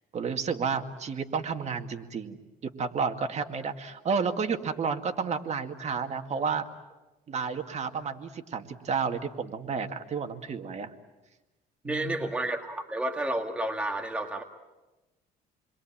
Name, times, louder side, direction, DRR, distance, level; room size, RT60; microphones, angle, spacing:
voice 1, 0.1-2.4 2.6-6.7 7.3-10.9 11.8-12.2, right 5 dB, 40° right, 6 dB, 2.1 m, -31 dB
voice 2, 11.8-14.4, right 1 dB, 5° right, 3 dB, 1.8 m, -31 dB
29.0 x 22.0 x 8.9 m, 1.1 s
cardioid pair, 110°, 17 cm